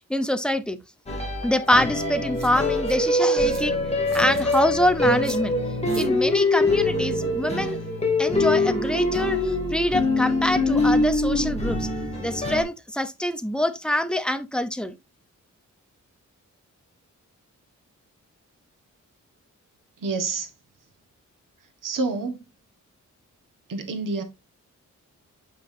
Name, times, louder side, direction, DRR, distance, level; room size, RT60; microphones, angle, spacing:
voice 1, 0.1-0.8 1.4-3.8 4.1-5.6 5.9-7.8 8.2-11.9 12.2-15.0, left 1 dB, 5° left, 0.7 m, -25 dB
sound 1, 1.1-12.6, left 2 dB, 20° left, 2.7 m, -24 dB
sound 2, 1.7-1.8 2.3-2.9 3.5-3.6 4.1-4.6 5.2-5.4 5.9-6.1, right 3 dB, 55° right, 3.4 m, -43 dB
voice 2, 20.0-20.5 21.8-22.5 23.7-24.2, right 3 dB, 90° right, 1.7 m, -28 dB
8.6 x 5.7 x 2.7 m
wide cardioid pair, 140°, 31 cm